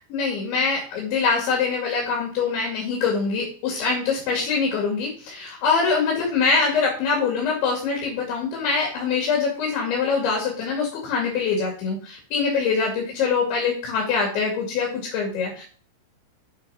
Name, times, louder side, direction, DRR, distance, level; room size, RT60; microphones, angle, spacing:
voice 1, 0.1-15.6, left 5 dB, 80° left, -1 dB, 4.8 m, -24 dB
8.8 x 6.1 x 6.3 m, 0.43 s
omnidirectional pair, 5.2 m